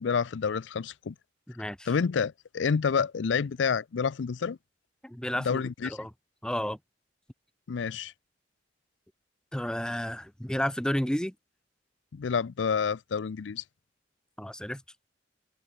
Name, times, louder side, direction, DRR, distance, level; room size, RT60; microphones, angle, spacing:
voice 1, 0.0-1.1 1.9-4.6 5.5-6.0 7.7-8.1 12.1-13.6, left 6 dB, 90° left, 0.5 m, -28 dB
voice 2, 1.5-1.9 5.0-6.1 6.4-6.8 9.5-11.3 14.4-14.8, equal, 5° left, 0.6 m, -32 dB
open air
head